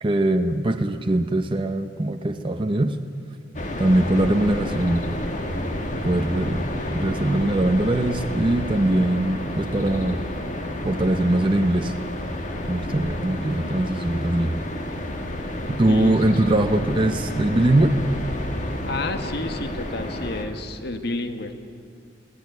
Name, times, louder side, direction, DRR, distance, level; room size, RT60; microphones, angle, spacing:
voice 1, 0.0-3.0 3.8-5.0 6.0-10.2 10.8-11.9 12.7-14.5 15.7-18.0, right 1 dB, 30° right, 5 dB, 0.7 m, -22 dB
sound 1, 3.5-20.4, left 1 dB, 45° left, 2.0 m, -30 dB
voice 2, 15.9-16.2 18.9-21.7, left 2 dB, 65° left, 8 dB, 1.5 m, -30 dB
21.5 x 16.5 x 9.3 m, 2.2 s
head